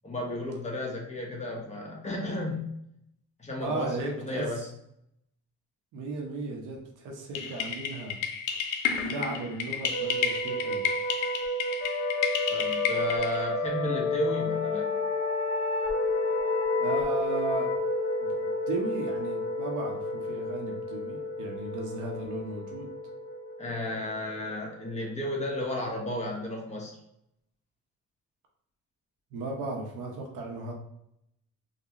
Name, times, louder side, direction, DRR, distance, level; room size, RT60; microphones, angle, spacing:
voice 1, 0.0-2.6 3.4-4.7 12.5-14.9 23.6-27.0, left 1 dB, 25° left, -1 dB, 1.1 m, -33 dB
voice 2, 3.6-4.5 5.9-8.2 9.1-10.9 16.8-17.7 18.2-22.9 29.3-30.7, right 3 dB, 85° right, 1 dB, 1.0 m, -35 dB
sound 1, 7.3-13.5, left 7 dB, 85° left, 0.6 m, -32 dB
sound 2, 9.9-25.3, left 2 dB, 45° left, 0.7 m, -31 dB
4.0 x 2.3 x 2.9 m, 0.77 s
cardioid pair, 90°, 30 cm